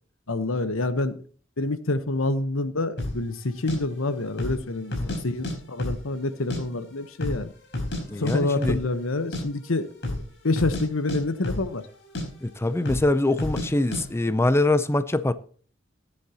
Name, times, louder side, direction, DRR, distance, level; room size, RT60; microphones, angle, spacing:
voice 1, 0.3-1.2 1.6-7.5 8.2-9.9 10.4-11.8, left 2 dB, 85° left, 1.1 m, -27 dB
sound 1, 3.0-3.2 3.7-3.8 4.3-4.6 4.9-5.5 5.8-6.6 6.9-7.0 7.2-8.0 8.3-8.4 8.6-8.8 9.1-9.4 9.9-10.3 10.5-11.9 12.1-12.3 12.8-13.1 13.4-13.7 13.9-14.0, left 1 dB, 60° left, 4.6 m, -30 dB
voice 2, 8.1-8.8 12.4-15.3, left 2 dB, 15° left, 0.5 m, -23 dB
16.5 x 10.0 x 2.9 m
head